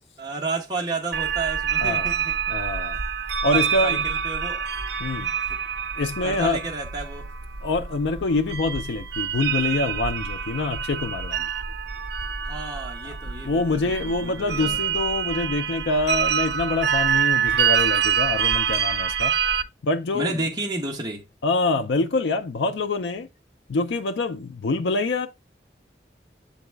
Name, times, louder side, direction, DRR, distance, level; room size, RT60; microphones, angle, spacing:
voice 1, 0.2-2.3 2.9-3.1 3.5-4.6 5.2-5.3 6.2-7.3 12.4-14.8 20.1-21.2, right 3 dB, 20° right, 1.1 m, -31 dB
sound 1, 1.1-19.6, right 8 dB, 75° right, 0.5 m, -26 dB
voice 2, 1.8-2.1 2.5-3.0 3.4-4.0 5.0-5.3 6.0-6.6 7.6-11.5 13.1-13.2 13.4-19.3 19.8-20.4 21.4-23.3 23.7-25.3, left 3 dB, 80° left, 0.5 m, -25 dB
7.1 x 4.0 x 3.3 m
head